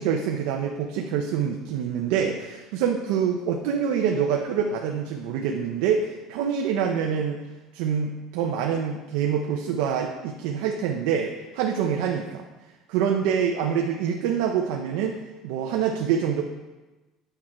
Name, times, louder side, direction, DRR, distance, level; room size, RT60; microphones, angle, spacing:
voice 1, 0.0-7.4 7.7-12.5 12.9-15.2 15.4-16.4, right 7 dB, 80° right, 2 dB, 0.7 m, -26 dB
9.0 x 6.1 x 4.3 m, 1.2 s
cardioid pair, 135°, 0 cm